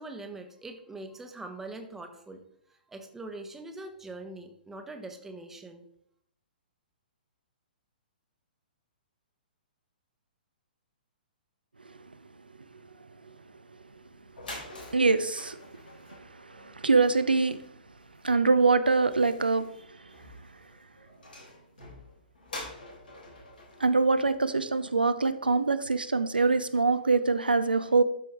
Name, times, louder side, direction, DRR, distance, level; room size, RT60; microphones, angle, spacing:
voice 1, 0.0-2.4 2.9-5.8, right 2 dB, 5° right, 5 dB, 1.0 m, -42 dB
sound 1, 14.0-14.1 14.3-25.0, left 2 dB, 70° left, 3.3 m, -47 dB
voice 2, 14.9-15.6 16.4-17.6 18.2-19.7 23.8-28.0, right 3 dB, 80° right, 11 dB, 0.6 m, -24 dB
12.0 x 4.5 x 3.6 m, 0.71 s
figure-of-eight pair, 120°, 5 cm